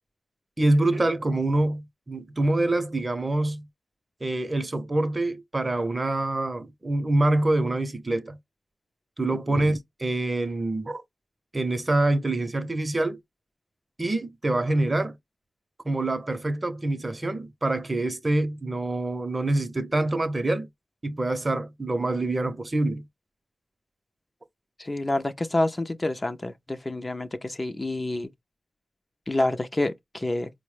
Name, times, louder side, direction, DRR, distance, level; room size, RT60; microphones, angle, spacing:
voice 1, 0.6-3.7 4.2-8.4 9.2-11.0 11.5-13.2 14.0-15.2 15.8-20.7 21.0-23.0, right 2 dB, 30° right, 0.6 m, -25 dB
voice 2, 24.8-28.3 29.3-30.5, left 2 dB, 30° left, 0.4 m, -28 dB
4.4 x 2.1 x 3.2 m
cardioid pair, 65°, 0 cm